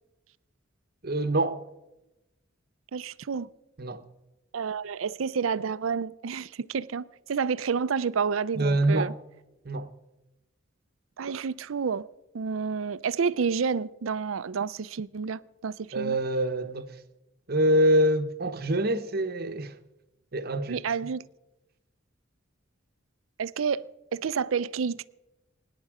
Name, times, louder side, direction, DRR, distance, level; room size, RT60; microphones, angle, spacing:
voice 1, 1.0-1.6 3.8-4.0 8.6-9.1 9.6-9.9 15.9-16.9 17.5-19.7 20.3-20.8, right 1 dB, 50° right, 1.0 m, -25 dB
voice 2, 2.9-3.5 4.5-9.1 11.2-12.1 12.3-16.2 20.7-21.2 23.4-25.1, right 6 dB, 90° right, 0.5 m, -29 dB
24.0 x 10.5 x 4.9 m
head